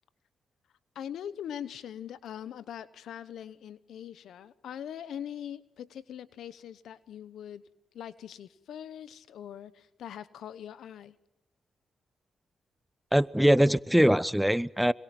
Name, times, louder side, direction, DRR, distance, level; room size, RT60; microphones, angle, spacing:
voice 1, 0.9-7.6 7.9-11.2, left 9 dB, 80° left, 1.0 m, -42 dB
voice 2, 13.1-14.9, equal, 5° right, 0.7 m, -22 dB
26.0 x 23.0 x 6.0 m
supercardioid pair, 60°, 0 cm